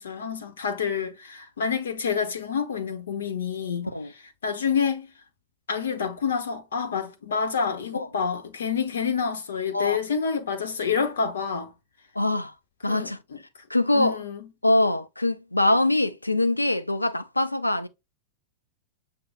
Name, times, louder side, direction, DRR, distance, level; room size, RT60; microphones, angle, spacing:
voice 1, 0.0-3.9 4.4-5.1 5.7-11.7 12.8-13.4 13.9-14.5, left 6 dB, 65° left, 1.0 m, -28 dB
voice 2, 12.1-12.5 12.8-13.2 13.7-14.2 14.6-17.9, left 1 dB, 85° left, 0.5 m, -23 dB
7.7 x 2.7 x 2.5 m
figure-of-eight pair, 95°, 0 cm